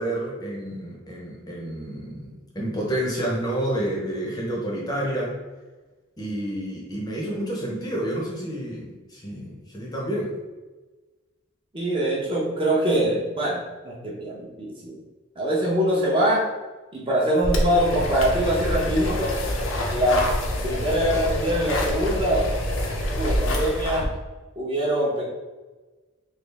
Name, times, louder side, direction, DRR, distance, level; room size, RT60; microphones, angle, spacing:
voice 1, 0.0-5.4 6.2-10.3, right 1 dB, 20° left, -3 dB, 0.6 m, -29 dB
voice 2, 11.7-15.0 15.4-16.4 16.9-19.4 19.9-20.2 20.6-22.5 23.1-24.1 24.6-25.3, right 1 dB, 25° right, -3 dB, 0.6 m, -23 dB
sound 1, 17.4-24.1, left 1 dB, 70° left, 0.6 m, -26 dB
3.3 x 2.4 x 3.3 m, 1.2 s
head